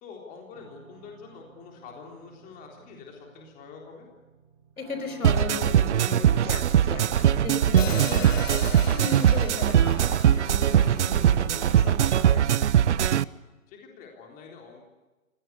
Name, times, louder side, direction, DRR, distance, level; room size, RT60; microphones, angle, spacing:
voice 1, 0.0-4.1 11.2-11.4 13.7-14.9, left 5 dB, 20° left, 0 dB, 3.8 m, -46 dB
sound 1, 0.5-12.8, right 7 dB, 30° right, 4.7 m, -53 dB
voice 2, 4.8-12.5, left 4 dB, 80° left, 7 dB, 5.4 m, -37 dB
sound 2, 5.2-13.2, right 10 dB, 55° right, 0.8 m, -21 dB
Hi-hat, 7.8-12.0, left 9 dB, 65° left, 0.9 m, -38 dB
25.0 x 17.5 x 8.4 m, 1.1 s
hypercardioid pair, 145°, 42 cm